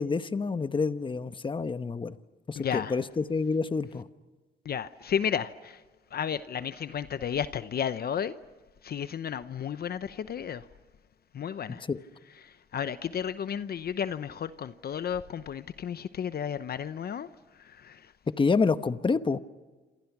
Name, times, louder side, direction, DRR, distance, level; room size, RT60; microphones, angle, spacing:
voice 1, 0.0-2.2 2.5-4.0 11.7-12.0 18.4-19.4, left 4 dB, 25° left, 1.0 m, -28 dB
voice 2, 2.6-3.0 4.6-5.8 6.1-8.4 8.8-10.7 11.3-11.8 12.4-17.3 17.6-18.1, left 8 dB, 50° left, 0.8 m, -33 dB
28.0 x 27.0 x 6.1 m
cardioid pair, 90°, 20 cm